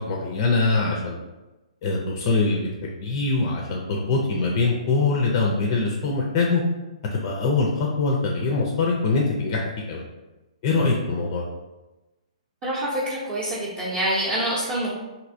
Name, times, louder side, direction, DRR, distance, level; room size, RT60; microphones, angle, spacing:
voice 1, 0.1-1.2 1.8-6.6 7.1-10.1 10.6-11.5, left 3 dB, 35° left, -1 dB, 0.4 m, -23 dB
voice 2, 12.6-14.9, right 1 dB, 25° right, -9 dB, 0.7 m, -26 dB
3.1 x 2.7 x 2.6 m, 1.1 s
figure-of-eight pair, 125°, 4 cm